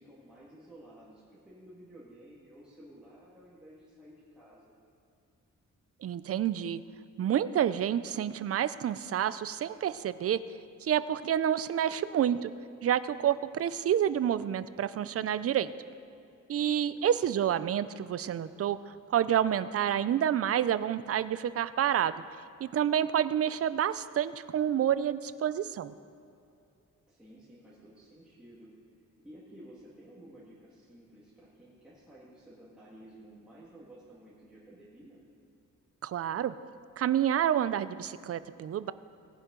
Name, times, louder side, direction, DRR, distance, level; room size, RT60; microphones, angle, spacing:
voice 1, 0.0-4.7 16.7-17.2 27.1-28.7 29.2-35.2, right 1 dB, 5° right, -9 dB, 1.8 m, -53 dB
voice 2, 6.0-6.8 7.2-10.4 10.8-12.5 12.8-15.7 16.5-18.8 19.1-22.1 22.6-25.9 36.0-36.5 37.0-38.9, right 10 dB, 50° right, 15 dB, 0.4 m, -28 dB
18.5 x 11.0 x 3.8 m, 2.6 s
wide cardioid pair, 160°, 31 cm